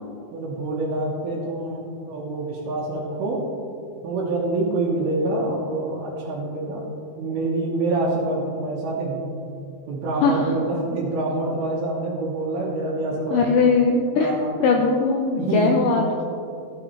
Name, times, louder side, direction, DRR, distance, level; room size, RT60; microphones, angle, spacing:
voice 1, 0.3-3.4 4.0-6.8 7.2-9.3 9.9-13.6 14.1-14.6 15.4-15.7, right 2 dB, 85° right, -5 dB, 3.1 m, -26 dB
voice 2, 10.2-10.5 13.3-14.3 14.6-16.2, left 4 dB, 80° left, 1 dB, 2.1 m, -20 dB
15.0 x 8.9 x 3.3 m, 2.6 s
omnidirectional pair, 4.4 m